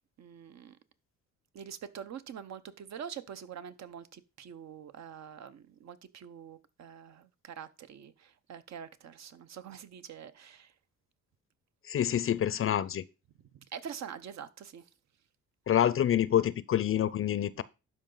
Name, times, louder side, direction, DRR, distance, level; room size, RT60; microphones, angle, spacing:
voice 1, 0.2-0.8 1.5-10.7 13.7-14.8, right 8 dB, 60° right, 0.9 m, -45 dB
voice 2, 11.9-13.0 15.7-17.6, left 10 dB, 45° left, 0.6 m, -27 dB
12.0 x 4.9 x 3.9 m
cardioid pair, 90°, 30 cm